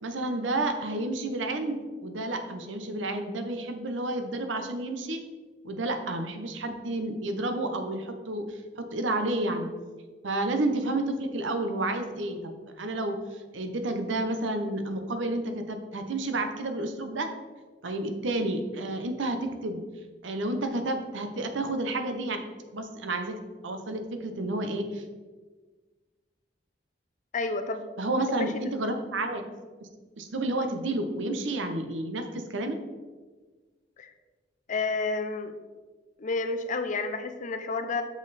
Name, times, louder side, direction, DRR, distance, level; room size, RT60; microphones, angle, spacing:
voice 1, 0.0-5.2 5.6-9.7 10.2-12.5 12.8-17.3 17.8-19.8 20.2-22.4 22.7-23.3 23.6-25.0 28.0-29.4 30.2-32.8, right 2 dB, 90° right, 7 dB, 0.8 m, -30 dB
voice 2, 27.3-27.8 28.3-28.5 34.0-34.1 34.7-35.5 36.2-38.0, left 3 dB, 40° left, 8 dB, 0.5 m, -30 dB
6.3 x 5.2 x 4.1 m, 1.4 s
head